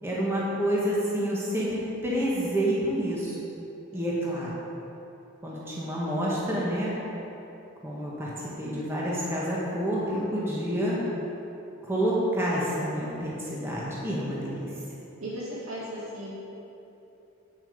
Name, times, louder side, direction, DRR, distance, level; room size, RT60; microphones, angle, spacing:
voice 1, 0.0-3.3 3.9-4.5 5.4-6.9 7.8-11.0 11.9-14.7, equal, 10° right, -7 dB, 1.5 m, -28 dB
voice 2, 15.2-16.4, equal, 80° right, -7 dB, 2.1 m, -36 dB
8.9 x 7.4 x 5.2 m, 2.9 s
head